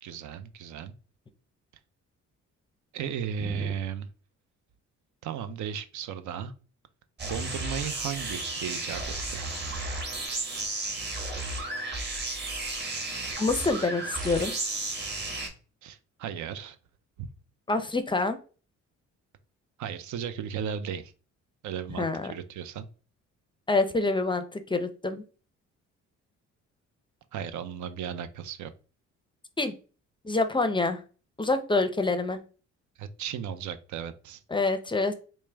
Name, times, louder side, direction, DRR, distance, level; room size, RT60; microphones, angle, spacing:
voice 1, 0.0-0.9 2.9-4.1 5.2-6.5 7.2-9.0 9.3-9.5 15.8-16.8 17.2-17.3 19.8-21.1 21.6-22.9 27.3-28.7 33.0-34.4, right 8 dB, 75° right, 12 dB, 0.6 m, -35 dB
sound 1, 7.2-15.5, right 2 dB, 35° right, 1.3 m, -33 dB
voice 2, 13.4-14.5 17.7-18.4 22.0-22.3 23.7-25.2 29.6-29.7 30.2-31.0 31.4-32.4 34.5-35.1, left 3 dB, 15° left, 9 dB, 0.5 m, -26 dB
4.6 x 2.1 x 3.3 m, 0.37 s
cardioid pair, 90°, 30 cm